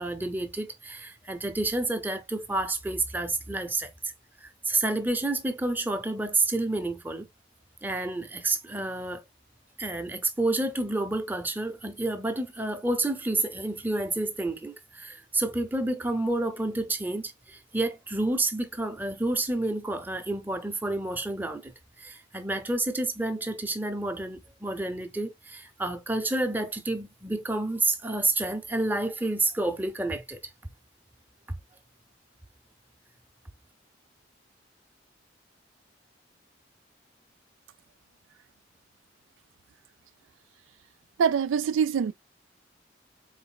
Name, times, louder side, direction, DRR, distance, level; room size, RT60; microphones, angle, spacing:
voice 1, 0.0-4.1 4.4-7.3 7.8-9.2 9.8-30.4 31.5-31.6, right 2 dB, 10° right, 0.6 m, -29 dB
voice 2, 41.2-42.1, right 7 dB, 90° right, 0.3 m, -24 dB
4.0 x 3.9 x 2.2 m
head